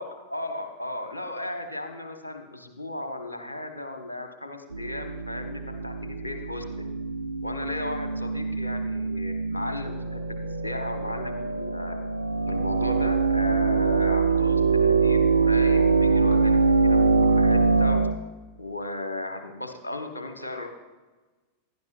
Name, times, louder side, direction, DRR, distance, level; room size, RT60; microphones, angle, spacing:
voice 1, 0.0-6.9 7.4-10.2 10.6-11.9 12.5-18.0 18.6-20.7, left 2 dB, 80° left, 5 dB, 1.3 m, -35 dB
sound 1, 4.7-18.2, right 4 dB, 80° right, 0.4 m, -24 dB
16.5 x 11.0 x 2.5 m, 1.2 s
figure-of-eight pair, 90°, 0 cm